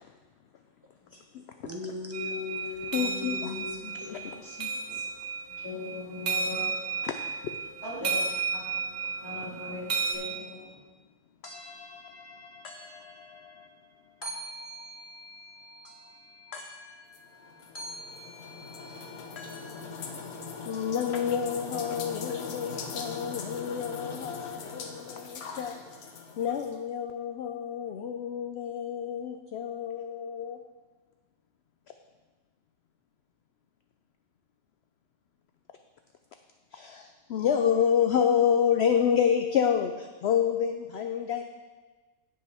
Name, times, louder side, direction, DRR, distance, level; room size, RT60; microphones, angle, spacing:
voice 1, 1.1-1.7 2.9-5.1 7.0-7.1 7.4-7.6 11.4-30.6 36.7-41.4, left 8 dB, 70° left, 6 dB, 0.6 m, -31 dB
voice 2, 1.6-4.3, left 4 dB, 10° right, 0 dB, 0.9 m, -38 dB
sound 1, 2.1-10.1, right 5 dB, 85° right, 1.6 m, -33 dB
voice 3, 5.5-7.1 7.8-10.8, left 2 dB, 15° left, -8 dB, 3.3 m, -40 dB
sound 2, 17.1-26.8, left 4 dB, 85° left, 1.4 m, -40 dB
16.5 x 5.5 x 3.5 m, 1.3 s
omnidirectional pair, 1.5 m